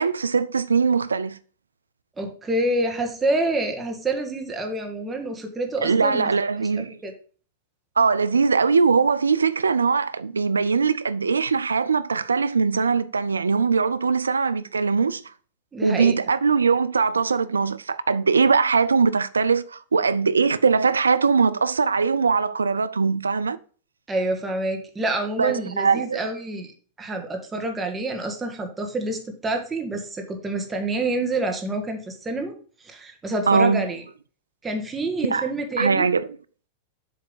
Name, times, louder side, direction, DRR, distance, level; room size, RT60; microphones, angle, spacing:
voice 1, 0.0-1.4 5.8-7.0 8.0-15.2 15.8-23.6 25.4-26.2 33.5-33.8 35.3-35.5 35.8-36.3, right 5 dB, 90° right, 0.4 m, -21 dB
voice 2, 2.2-6.3 6.6-7.1 15.7-16.2 24.1-26.7 27.0-32.5 32.8-34.0 34.6-36.1, right 2 dB, 15° right, 1.6 m, -27 dB
7.6 x 3.4 x 5.4 m
hypercardioid pair, 100°, 0 cm